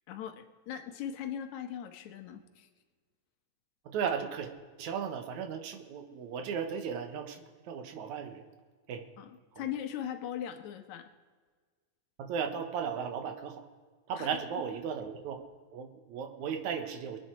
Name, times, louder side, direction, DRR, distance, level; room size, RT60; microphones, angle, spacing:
voice 1, 0.1-2.7 9.2-9.3 9.6-11.1 14.2-14.3, left 9 dB, 80° left, 7 dB, 2.4 m, -39 dB
voice 2, 3.9-4.5 4.8-8.4 8.9-9.1 9.5-9.6 12.2-13.6 14.1-15.4 15.7-17.2, right 7 dB, 80° right, 6 dB, 2.6 m, -36 dB
23.0 x 9.5 x 4.5 m, 1.5 s
omnidirectional pair, 3.3 m